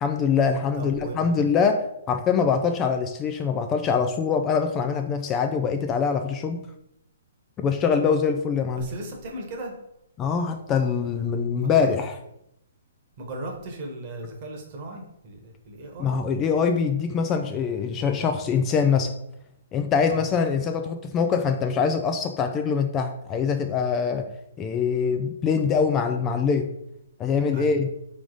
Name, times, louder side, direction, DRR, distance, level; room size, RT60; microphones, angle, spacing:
voice 1, 0.0-6.6 7.6-8.9 10.2-12.2 16.0-19.1 19.7-24.3 24.6-26.7 27.2-27.9, left 6 dB, 20° left, 6 dB, 0.3 m, -24 dB
voice 2, 0.8-1.4 8.8-9.7 11.6-11.9 13.2-16.1 20.1-20.2 27.4-27.7, right 2 dB, 40° right, 1 dB, 1.2 m, -37 dB
3.6 x 3.2 x 3.9 m, 0.79 s
hypercardioid pair, 135°, 0 cm